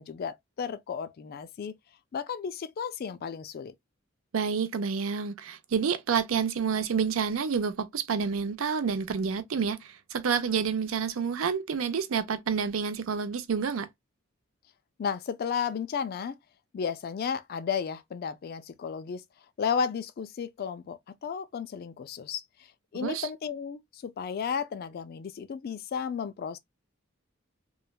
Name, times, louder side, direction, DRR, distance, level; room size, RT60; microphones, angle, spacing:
voice 1, 0.0-1.8 2.1-3.7 15.0-16.4 16.7-19.2 19.6-22.4 22.9-26.6, left 6 dB, 50° left, 0.3 m, -33 dB
voice 2, 4.3-13.9 22.9-23.3, right 6 dB, 80° right, 0.5 m, -29 dB
3.1 x 2.1 x 2.3 m
head